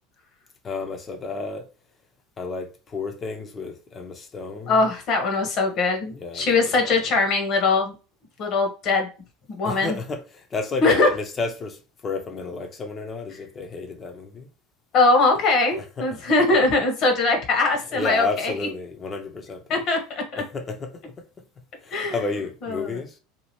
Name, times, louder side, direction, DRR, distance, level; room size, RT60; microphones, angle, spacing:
voice 1, 0.6-1.7 2.4-4.8 6.1-7.0 9.6-14.5 15.7-16.0 17.9-19.8 20.4-20.9 21.8-23.2, left 4 dB, 30° left, 0.7 m, -31 dB
voice 2, 4.7-7.9 8.4-9.1 9.5-10.0 10.8-11.1 14.9-18.5 19.7-20.4 21.9-22.2 22.6-23.0, left 3 dB, 50° left, 1.1 m, -21 dB
2.8 x 2.4 x 3.0 m
supercardioid pair, 100°, 0 cm